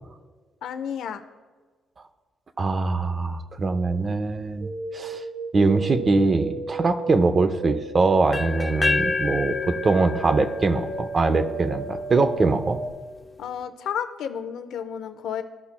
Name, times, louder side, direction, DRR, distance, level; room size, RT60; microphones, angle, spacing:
voice 1, 0.6-1.2 13.4-15.4, left 8 dB, 80° left, 9 dB, 0.6 m, -31 dB
voice 2, 2.6-5.2 5.5-12.8, right 3 dB, 35° right, 10 dB, 0.7 m, -22 dB
sound 1, 4.6-12.9, right 3 dB, 65° right, 2.4 m, -34 dB
sound 2, 8.3-12.2, left 4 dB, 25° left, 0.4 m, -29 dB
15.5 x 5.7 x 2.2 m, 1.4 s
cardioid pair, 90°, 0 cm